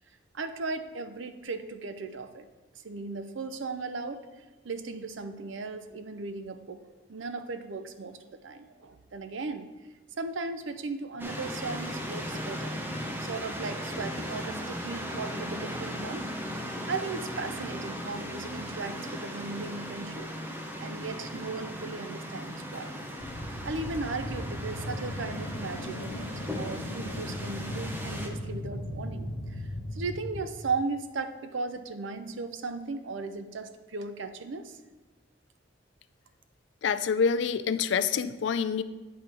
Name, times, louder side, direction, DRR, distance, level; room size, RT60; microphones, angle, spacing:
voice 1, 0.3-2.5 2.8-6.8 7.1-9.7 10.2-12.7 13.2-16.3 16.9-20.3 20.8-23.0 23.6-26.3 26.6-29.6 29.9-34.8, right 3 dB, 70° right, 9 dB, 0.6 m, -37 dB
sound 1, 11.2-28.3, equal, 10° right, 0.7 m, -37 dB
sound 2, 23.2-30.5, left 1 dB, 85° left, 1.1 m, -37 dB
voice 2, 36.8-38.8, left 6 dB, 65° left, 13 dB, 0.3 m, -26 dB
8.5 x 3.7 x 6.0 m, 1.2 s
head